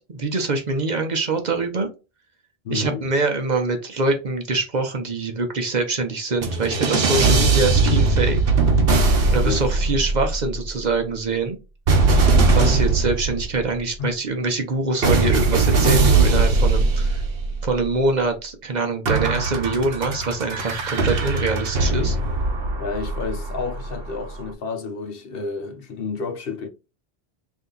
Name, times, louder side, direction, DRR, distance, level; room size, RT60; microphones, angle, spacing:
voice 1, 0.0-1.9 2.7-8.4 9.3-11.6 12.6-17.2 17.6-22.2, right 3 dB, 50° right, 0.8 m, -24 dB
voice 2, 2.6-3.0 9.4-9.7 12.3-12.7 14.0-14.1 22.8-26.7, left 4 dB, 65° left, 0.9 m, -30 dB
sound 1, 6.4-10.7 11.9-13.8 15.0-17.9 19.1-24.1, right 3 dB, 70° right, 1.1 m, -20 dB
3.4 x 2.7 x 3.8 m
omnidirectional pair, 1.1 m